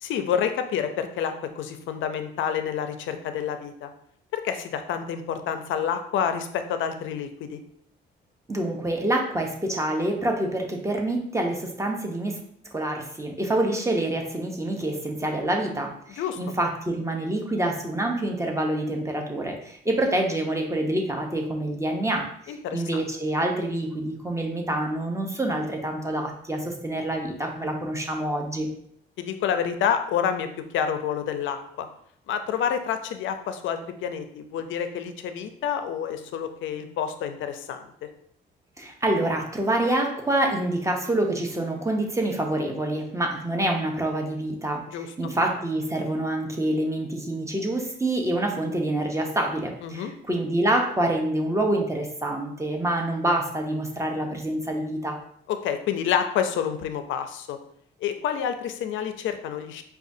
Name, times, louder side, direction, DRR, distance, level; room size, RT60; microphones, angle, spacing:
voice 1, 0.0-3.9 4.3-7.6 16.2-16.4 22.5-23.0 29.2-30.5 30.7-31.9 32.3-37.8 44.9-45.1 49.8-50.1 55.5-57.6 58.0-59.8, left 8 dB, 75° left, 8 dB, 0.4 m, -28 dB
voice 2, 8.5-12.4 12.6-28.7 38.8-55.2, right 1 dB, 15° right, 2 dB, 0.7 m, -27 dB
4.8 x 2.3 x 2.6 m, 0.67 s
cardioid pair, 90°, 20 cm